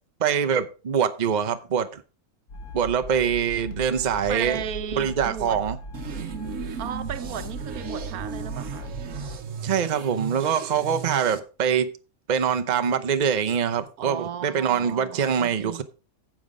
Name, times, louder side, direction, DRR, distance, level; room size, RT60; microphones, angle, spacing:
voice 1, 0.2-2.0 2.7-4.6 4.9-5.8 9.6-11.9 12.3-15.8, right 7 dB, 40° right, 0.8 m, -24 dB
sound 1, 2.5-9.4, equal, 85° left, 2.2 m, -38 dB
voice 2, 4.3-5.6 6.8-8.9 14.0-15.8, right 9 dB, 85° right, 1.3 m, -35 dB
sound 2, 5.9-11.4, right 7 dB, 65° right, 1.3 m, -36 dB
9.4 x 7.5 x 4.9 m
omnidirectional pair, 1.5 m